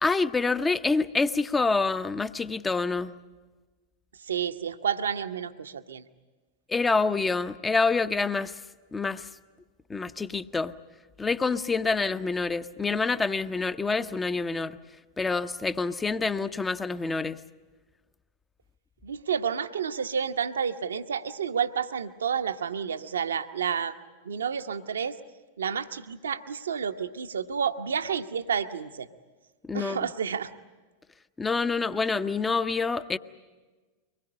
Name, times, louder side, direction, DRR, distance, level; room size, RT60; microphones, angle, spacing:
voice 1, 0.0-3.2 6.7-8.6 8.9-9.3 9.9-10.7 11.2-14.8 15.2-17.4 29.7-30.1 31.4-33.2, left 4 dB, 15° left, 12 dB, 0.7 m, -27 dB
voice 2, 4.2-6.0 19.0-23.9 24.2-25.2 25.6-29.1 29.7-30.5, right 7 dB, 70° right, 10 dB, 0.9 m, -30 dB
24.0 x 20.5 x 8.7 m, 1.3 s
figure-of-eight pair, 90°, 0 cm